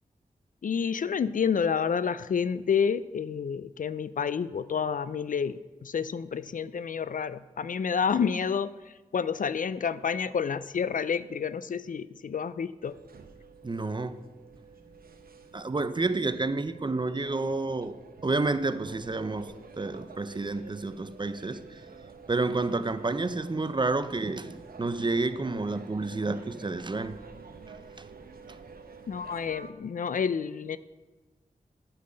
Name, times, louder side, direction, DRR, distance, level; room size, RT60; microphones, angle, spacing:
voice 1, 0.6-13.0 29.1-30.8, left 6 dB, 60° left, 0.4 m, -29 dB
sound 1, 12.8-29.7, right 4 dB, 80° right, 0.9 m, -48 dB
voice 2, 13.6-14.2 15.5-18.0 18.2-21.8 22.3-24.5 24.8-27.2 28.0-28.1, right 3 dB, 30° right, 0.6 m, -30 dB
9.9 x 5.7 x 7.6 m
cardioid pair, 50°, 15 cm